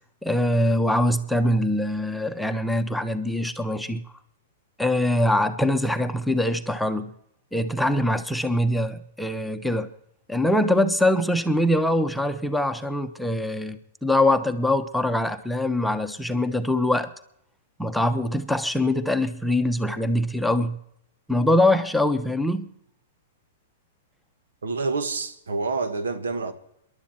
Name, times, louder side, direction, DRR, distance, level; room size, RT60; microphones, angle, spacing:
voice 1, 0.2-4.0 4.8-7.1 7.5-9.9 10.3-17.1 17.8-20.8 21.3-22.7, left 1 dB, ahead, 1.0 m, -23 dB
voice 2, 24.6-26.5, right 3 dB, 75° right, 1.6 m, -27 dB
27.5 x 11.5 x 4.4 m
hypercardioid pair, 110°, 0 cm